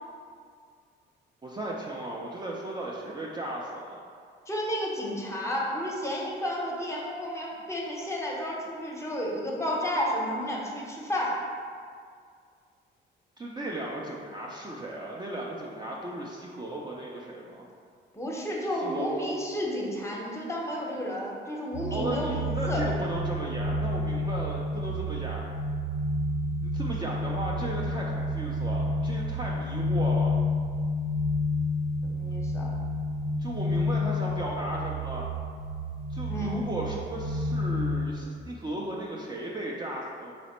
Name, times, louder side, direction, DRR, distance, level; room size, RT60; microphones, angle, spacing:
voice 1, 1.4-4.0 13.4-17.7 18.7-19.2 21.9-25.5 26.6-30.3 33.4-35.3 36.1-40.3, right 1 dB, 20° right, -3 dB, 0.4 m, -36 dB
voice 2, 4.5-11.4 18.1-22.8 32.0-32.7 36.3-36.6, equal, 15° left, -3 dB, 0.7 m, -32 dB
sound 1, 21.7-38.2, left 1 dB, 55° right, 0.9 m, -30 dB
4.1 x 2.0 x 4.2 m, 2.1 s
cardioid pair, 90°, 20 cm